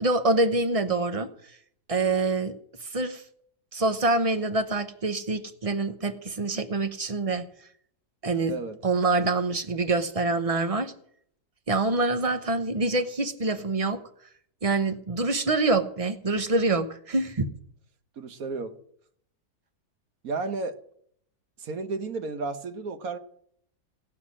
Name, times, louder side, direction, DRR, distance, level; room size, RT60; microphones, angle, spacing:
voice 1, 0.0-1.3 1.9-2.5 2.8-3.2 3.7-7.5 8.2-8.5 8.8-10.9 11.7-14.0 14.6-17.5, right 3 dB, 30° right, 9 dB, 0.8 m, -25 dB
voice 2, 18.2-18.7 20.2-20.8 21.6-23.2, right 3 dB, 65° right, 9 dB, 1.5 m, -32 dB
17.5 x 5.9 x 9.8 m, 0.67 s
omnidirectional pair, 1.7 m